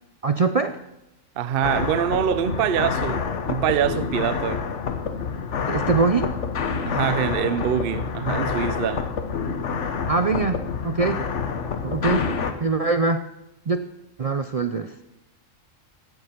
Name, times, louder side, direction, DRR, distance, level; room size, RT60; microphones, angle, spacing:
voice 1, 0.2-0.8 5.7-6.3 10.1-11.2 11.8-12.3 12.6-13.3 13.7-13.8 14.2-14.9, right 4 dB, 70° right, 0.3 m, -23 dB
voice 2, 1.4-4.6 6.8-9.1, right 9 dB, 55° right, 0.7 m, -24 dB
sound 1, 1.6-12.5, left 6 dB, 60° left, 1.3 m, -27 dB
15.5 x 9.5 x 5.8 m
omnidirectional pair, 1.4 m